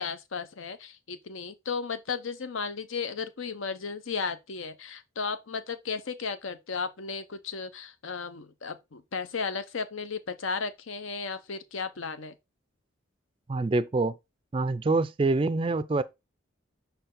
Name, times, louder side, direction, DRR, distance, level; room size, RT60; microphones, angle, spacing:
voice 1, 0.0-12.3, left 5 dB, 80° left, 0.8 m, -34 dB
voice 2, 13.5-14.2 14.5-16.0, right 3 dB, 25° right, 0.3 m, -25 dB
5.7 x 4.4 x 3.7 m
head